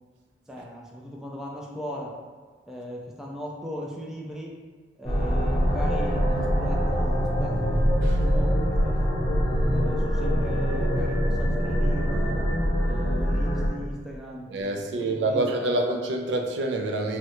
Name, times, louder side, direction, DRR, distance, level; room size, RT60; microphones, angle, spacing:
voice 1, 0.5-2.1 2.7-4.5 5.0-9.0 9.7-12.5 12.8-14.5 15.0-15.8, equal, 5° right, -3 dB, 0.4 m, -38 dB
sound 1, 5.0-13.7, equal, 25° left, 0.7 m, -24 dB
voice 2, 14.5-17.2, right 2 dB, 75° right, 3 dB, 0.4 m, -27 dB
3.5 x 2.1 x 2.9 m, 1.4 s
head